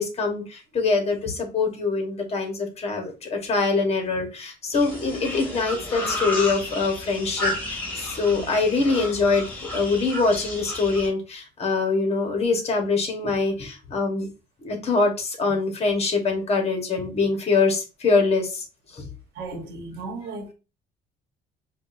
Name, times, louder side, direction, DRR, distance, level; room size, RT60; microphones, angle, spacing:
voice 1, 0.0-9.5 9.7-14.3 14.6-18.6 18.9-19.1 19.5-19.6, left 4 dB, 40° left, 1.3 m, -24 dB
sound 1, 4.7-11.1, left 1 dB, 10° left, 1.9 m, -32 dB
voice 2, 19.3-20.5, right 3 dB, 70° right, 1.2 m, -36 dB
4.9 x 2.4 x 2.6 m
cardioid pair, 110°, 17 cm